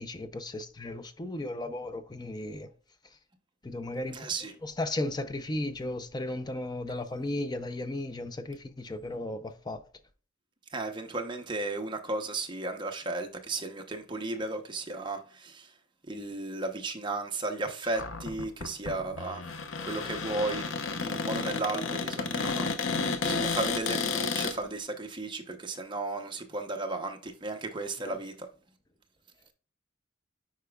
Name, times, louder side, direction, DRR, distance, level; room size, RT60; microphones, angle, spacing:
voice 1, 0.0-2.7 3.6-4.3 4.6-9.8 28.0-28.2, left 1 dB, 20° left, 0.5 m, -35 dB
voice 2, 4.1-4.5 10.7-15.8 16.1-19.4 19.8-20.7 21.0-22.7 23.2-28.5, right 2 dB, 25° right, 0.8 m, -34 dB
Cupboard open or close, 17.9-24.6, left 4 dB, 75° left, 0.7 m, -32 dB
8.2 x 4.9 x 2.3 m
head